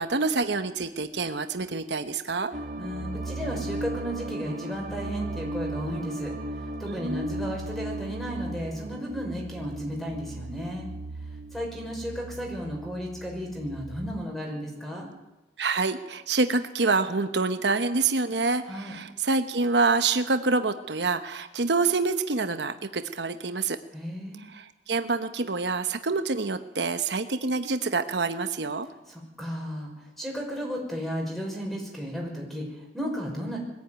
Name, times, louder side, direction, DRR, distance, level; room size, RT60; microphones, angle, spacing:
voice 1, 0.0-2.5 6.9-7.3 15.6-23.8 24.4-28.9, right 3 dB, 75° right, 9 dB, 1.1 m, -27 dB
sound 1, 2.5-14.1, right 2 dB, 55° right, 2.5 m, -36 dB
voice 2, 2.8-10.9 11.5-15.1 18.7-18.9 23.9-24.4 29.1-33.6, equal, ahead, 0 dB, 5.9 m, -34 dB
21.5 x 15.5 x 9.3 m, 1.0 s
head